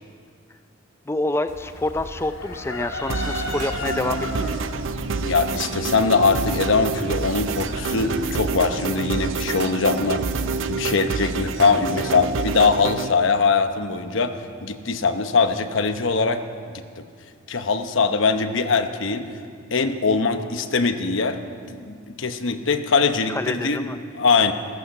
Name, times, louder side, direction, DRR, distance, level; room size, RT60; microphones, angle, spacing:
voice 1, 1.1-4.6 23.3-24.0, left 2 dB, 10° left, 10 dB, 0.4 m, -27 dB
Chicken rooster, 1.5-8.2, left 2 dB, 80° left, 3.0 m, -35 dB
sound 1, 3.1-13.1, right 5 dB, 65° right, 0.5 m, -28 dB
sound 2, 3.4-12.1, equal, 85° right, 3.1 m, -39 dB
voice 2, 5.2-10.2 10.7-14.3 14.6-16.4 17.0-17.1 17.5-19.3 19.7-21.4 21.7-23.9 24.2-24.5, left 4 dB, 65° left, 8 dB, 0.9 m, -22 dB
15.5 x 14.5 x 5.8 m, 2.1 s
head